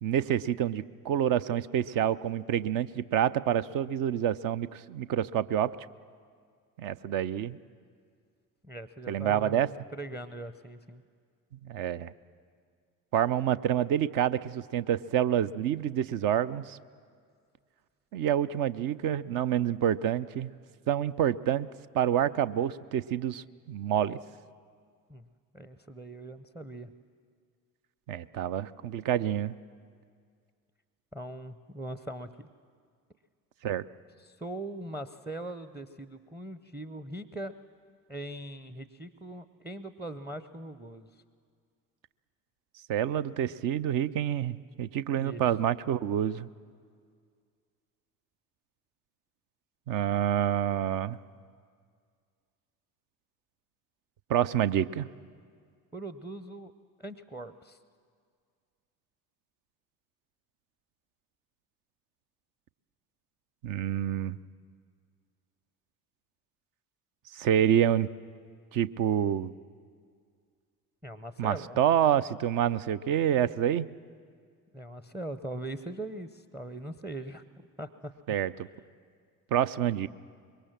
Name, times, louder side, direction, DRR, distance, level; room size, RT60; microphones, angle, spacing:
voice 1, 0.0-5.7 6.8-7.6 9.1-9.7 11.6-12.1 13.1-16.8 18.1-20.5 20.9-21.7 21.9-24.2 28.1-29.6 33.6-33.8 42.9-46.5 49.9-51.2 54.3-55.1 63.6-64.4 67.3-68.1 68.7-69.5 71.4-73.9 78.3-78.7 79.5-80.1, right 10 dB, 45° right, 15 dB, 0.7 m, -27 dB
voice 2, 8.6-9.6 9.9-11.0 25.1-25.3 25.5-26.9 31.1-32.5 34.2-37.6 38.1-41.1 45.2-45.5 55.9-56.7 57.0-57.8 71.0-71.8 74.7-78.1, right 1 dB, 5° right, 13 dB, 0.7 m, -41 dB
25.0 x 22.0 x 7.4 m, 2.1 s
figure-of-eight pair, 55°, 45 cm